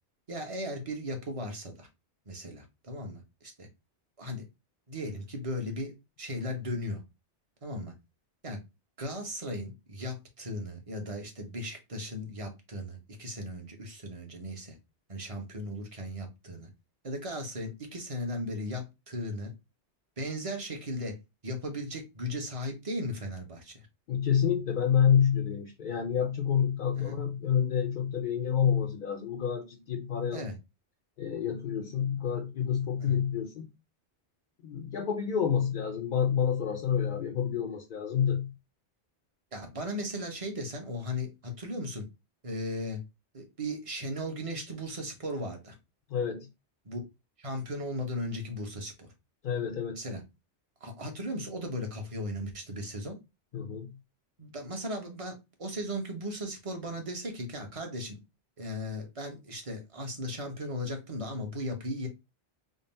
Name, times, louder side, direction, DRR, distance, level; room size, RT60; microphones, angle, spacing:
voice 1, 0.3-1.9 2.3-3.7 4.2-4.4 4.9-7.0 7.6-7.9 8.4-8.6 9.0-14.8 15.1-16.7 17.0-19.5 20.2-21.2 21.4-23.8 27.0-27.2 30.3-30.6 33.0-33.2 39.5-42.0 42.4-43.0 43.3-45.8 46.8-47.0 47.4-49.1 49.9-50.2 50.8-53.2 54.4-58.2 58.6-62.1, left 1 dB, 30° right, 1.0 m, -37 dB
voice 2, 24.1-30.4 31.2-33.7 34.6-38.5 46.1-46.5 49.4-50.0 53.5-54.0, left 8 dB, 55° left, 0.6 m, -28 dB
3.8 x 2.1 x 4.1 m
omnidirectional pair, 1.2 m